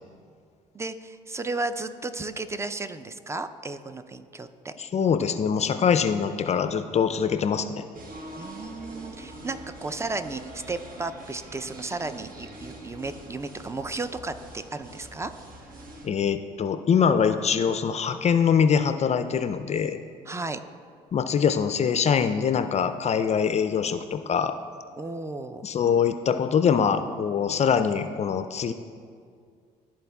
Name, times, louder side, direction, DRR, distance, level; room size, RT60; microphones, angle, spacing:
voice 1, 0.7-4.7 8.4-15.3 20.3-20.6 25.0-25.7, right 3 dB, 15° right, 10 dB, 0.5 m, -34 dB
voice 2, 4.8-7.8 16.0-20.0 21.1-24.5 25.6-28.7, left 7 dB, 40° left, 9 dB, 0.4 m, -23 dB
sound 1, 7.9-16.1, right 1 dB, 50° right, 1.2 m, -44 dB
12.5 x 4.3 x 2.3 m, 2.2 s
hypercardioid pair, 60°, 18 cm